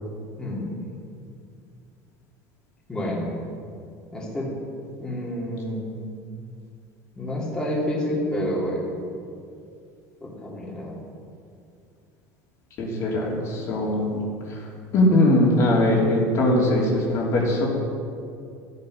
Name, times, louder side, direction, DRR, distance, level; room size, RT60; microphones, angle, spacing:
voice 1, 0.4-0.8 2.9-3.3 4.1-4.5 5.0-5.9 7.1-9.0 10.2-11.0, equal, 10° left, -6 dB, 3.1 m, -28 dB
voice 2, 12.8-14.2 14.5-14.6 14.9-17.7, left 1 dB, 45° left, -3 dB, 3.1 m, -21 dB
14.5 x 9.6 x 6.5 m, 2.4 s
cardioid pair, 140°, 7 cm